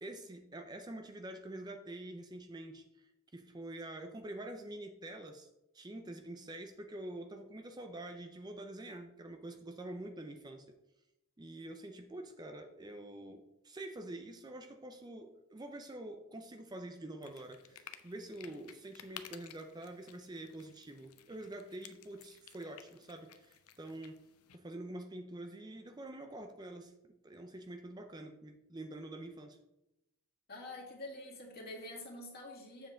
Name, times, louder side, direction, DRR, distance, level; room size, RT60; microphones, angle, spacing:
voice 1, 0.0-5.5 5.7-10.7 11.4-24.3 24.5-29.6, right 1 dB, 20° right, 6 dB, 0.5 m, -46 dB
sound 1, 17.2-24.6, left 10 dB, 85° left, 0.6 m, -55 dB
voice 2, 30.5-32.9, left 2 dB, 45° left, -1 dB, 2.0 m, -46 dB
7.8 x 7.0 x 3.8 m, 0.92 s
head